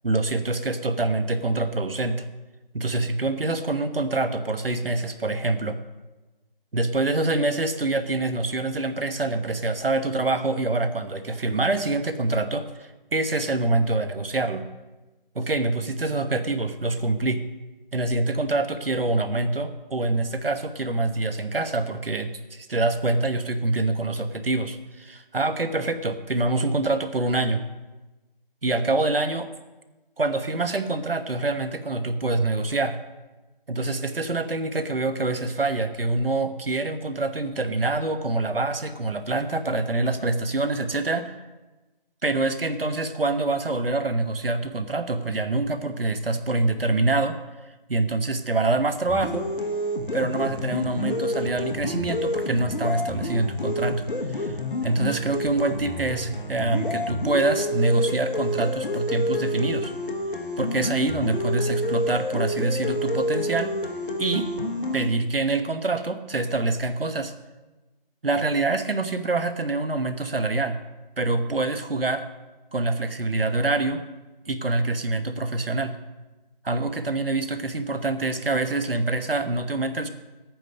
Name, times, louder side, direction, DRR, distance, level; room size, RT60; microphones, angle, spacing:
voice 1, 0.0-2.3 2.7-5.8 6.7-14.6 15.3-17.4 17.9-27.6 28.6-29.5 30.2-33.0 33.7-41.3 42.2-47.4 47.9-49.5 50.1-54.0 54.3-54.6 54.8-59.9 60.6-63.7 64.2-64.5 64.9-67.3 68.2-70.8 71.2-72.3 72.7-74.0 74.5-76.0 76.6-80.1, right 2 dB, 75° right, 10 dB, 1.1 m, -25 dB
sound 1, 49.1-65.1, left 1 dB, 60° left, 1.1 m, -29 dB
10.5 x 9.1 x 5.6 m, 1.1 s
figure-of-eight pair, 170°, 29 cm